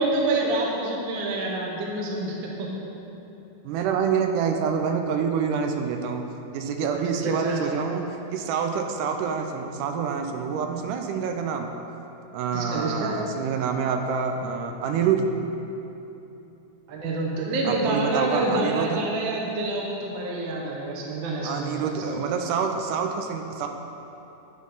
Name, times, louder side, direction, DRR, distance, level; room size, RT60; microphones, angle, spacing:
voice 1, 0.0-2.7 7.0-7.8 12.5-13.1 16.9-22.2, right 2 dB, 65° right, -2 dB, 1.1 m, -27 dB
voice 2, 3.6-6.2 6.5-11.7 12.3-15.3 17.7-19.0 21.4-23.7, right 6 dB, 85° right, 4 dB, 2.1 m, -27 dB
11.0 x 3.8 x 5.4 m, 3.0 s
omnidirectional pair, 3.7 m